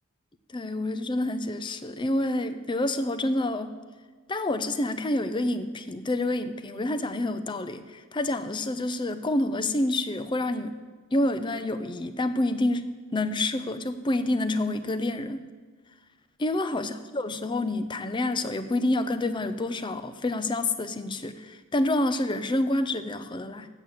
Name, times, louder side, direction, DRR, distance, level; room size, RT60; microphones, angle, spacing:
voice 1, 0.5-3.7 4.3-10.8 11.1-15.4 16.4-23.7, left 1 dB, 20° left, 10 dB, 0.5 m, -28 dB
7.9 x 7.3 x 8.5 m, 1.4 s
head